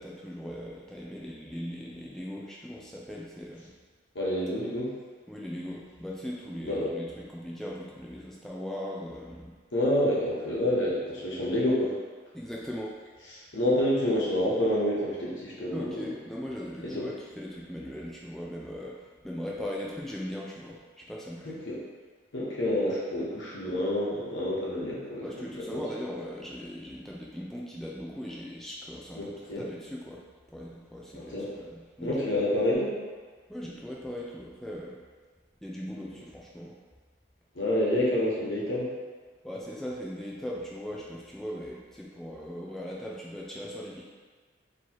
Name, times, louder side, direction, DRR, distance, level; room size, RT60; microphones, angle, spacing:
voice 1, 0.0-3.7 5.3-9.5 12.3-12.9 15.7-21.6 25.2-30.2 30.5-32.2 33.5-35.0 35.6-36.7 39.4-44.0, equal, ahead, -4 dB, 0.3 m, -39 dB
voice 2, 4.1-4.9 6.6-6.9 9.7-11.9 13.5-16.0 16.8-17.1 21.4-21.8 22.3-25.3 25.7-25.8 29.2-29.6 31.1-31.5 32.0-32.9 37.6-38.9, left 1 dB, 80° left, -6 dB, 1.1 m, -28 dB
4.4 x 3.1 x 2.9 m, 1.4 s
head